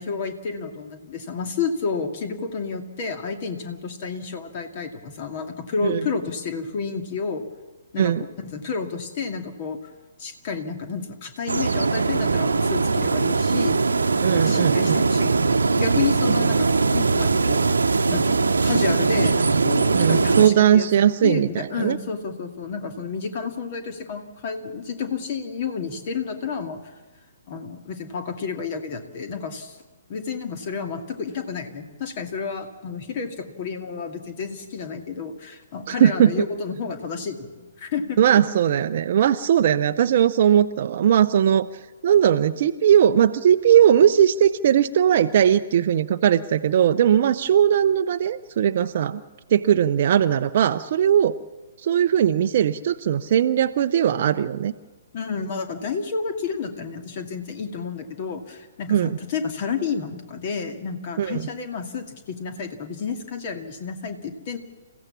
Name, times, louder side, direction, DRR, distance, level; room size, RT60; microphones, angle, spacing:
voice 1, 0.0-7.4 7.9-8.1 8.4-9.8 10.2-13.9 14.3-17.8 18.1-20.9 21.2-26.8 27.5-29.8 30.1-38.2 55.1-64.6, left 5 dB, 40° left, 6 dB, 2.3 m, -30 dB
sound 1, 11.5-20.5, right 4 dB, 70° right, 1.0 m, -21 dB
voice 2, 14.2-15.0 19.9-22.0 35.9-36.3 38.2-41.7 42.0-49.2 49.5-51.3 51.8-54.7 58.9-59.2 61.2-61.4, right 9 dB, 45° right, 10 dB, 0.6 m, -19 dB
29.0 x 15.5 x 7.2 m, 1.3 s
figure-of-eight pair, 125°, 0 cm